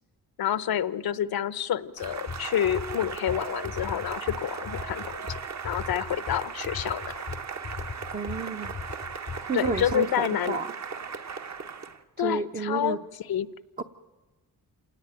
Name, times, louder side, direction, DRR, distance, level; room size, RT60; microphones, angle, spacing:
voice 1, 0.4-5.2 5.6-7.2 9.5-10.6 12.2-13.0 13.3-13.5, left 10 dB, 75° left, 17 dB, 0.8 m, -28 dB
sound 1, 2.0-10.0, left 5 dB, 25° left, 0.7 m, -39 dB
Cheering / Applause, 2.0-12.0, right 5 dB, 45° right, 1.2 m, -37 dB
voice 2, 8.1-8.7 9.5-10.7 12.2-13.0 13.8-13.9, right 4 dB, 25° right, 5 dB, 0.7 m, -30 dB
27.5 x 18.5 x 9.0 m, 1.2 s
wide cardioid pair, 120°, 37 cm